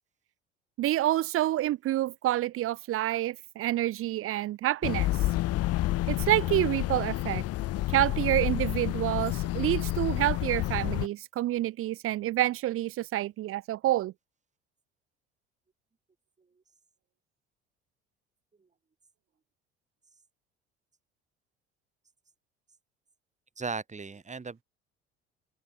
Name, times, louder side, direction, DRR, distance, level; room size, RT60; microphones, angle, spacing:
voice 1, 0.8-5.1 6.1-7.4 7.9-14.1, right 14 dB, 45° right, 0.6 m, -28 dB
sound 1, 4.8-11.1, left 16 dB, 50° left, 0.9 m, -29 dB
voice 2, 23.6-24.6, right 4 dB, 20° right, 3.6 m, -36 dB
open air
hypercardioid pair, 65°, 32 cm